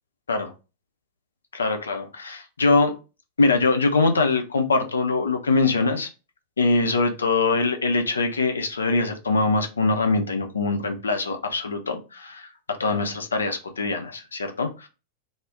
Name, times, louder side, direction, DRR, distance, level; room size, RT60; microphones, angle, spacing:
voice 1, 1.5-3.0 3.4-6.1 6.6-14.9, left 3 dB, 75° left, 0.4 m, -23 dB
2.4 x 2.1 x 3.4 m
figure-of-eight pair, 90°, 0 cm